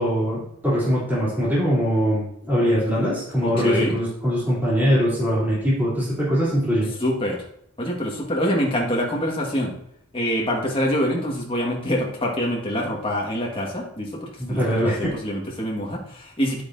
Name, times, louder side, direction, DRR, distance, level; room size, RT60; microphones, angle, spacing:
voice 1, 0.0-6.9 14.4-15.1, equal, 10° right, -8 dB, 3.2 m, -22 dB
voice 2, 3.4-4.0 7.0-7.4 7.8-9.8 10.1-16.6, equal, 25° left, -1 dB, 1.8 m, -25 dB
9.9 x 8.4 x 2.7 m, 0.71 s
head